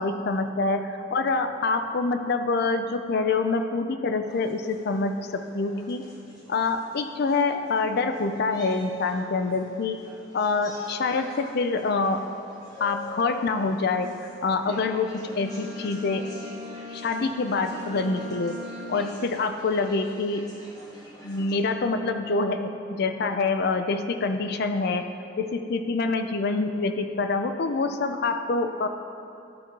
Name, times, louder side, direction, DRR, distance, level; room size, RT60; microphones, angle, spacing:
voice 1, 0.0-6.1 6.5-10.0 10.3-12.2 12.8-14.1 14.4-16.3 16.9-18.6 18.9-20.5 21.2-25.1 25.4-28.9, left 3 dB, 55° left, 8 dB, 0.5 m, -26 dB
sound 1, 4.3-21.6, equal, 20° left, 1.1 m, -47 dB
Bowed string instrument, 15.2-19.4, left 2 dB, 45° right, 1.6 m, -40 dB
12.5 x 4.2 x 4.5 m, 2.7 s
head